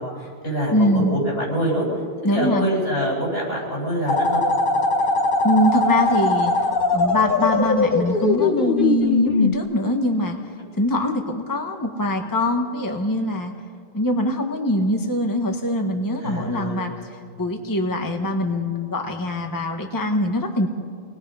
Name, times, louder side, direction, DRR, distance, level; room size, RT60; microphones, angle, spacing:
voice 1, 0.0-1.8 2.3-4.4 16.2-16.8, equal, 80° left, -4 dB, 8.5 m, -25 dB
voice 2, 0.7-1.2 2.2-2.7 5.4-13.5 13.9-20.7, left 1 dB, 20° left, 4 dB, 1.2 m, -23 dB
sound 1, 4.1-9.5, left 3 dB, 55° left, 1.2 m, -20 dB
27.0 x 20.0 x 5.5 m, 2.1 s
omnidirectional pair, 1.0 m